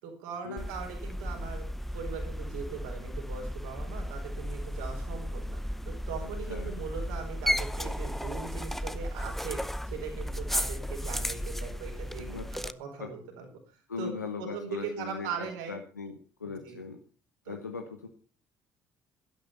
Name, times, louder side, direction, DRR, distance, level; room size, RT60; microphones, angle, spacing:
voice 1, 0.0-1.7 1.9-5.6 5.9-13.5 14.0-14.1 14.4-15.7 16.4-16.8 17.4-17.6, right 6 dB, 70° right, 2 dB, 4.5 m, -40 dB
sound 1, 0.6-12.7, equal, ahead, 0.7 m, -34 dB
voice 2, 6.2-6.7 12.2-12.5 13.0-13.1 13.9-17.0 17.5-18.1, left 5 dB, 90° left, 5 dB, 0.9 m, -39 dB
12.0 x 11.5 x 5.5 m, 0.38 s
figure-of-eight pair, 50°, 9 cm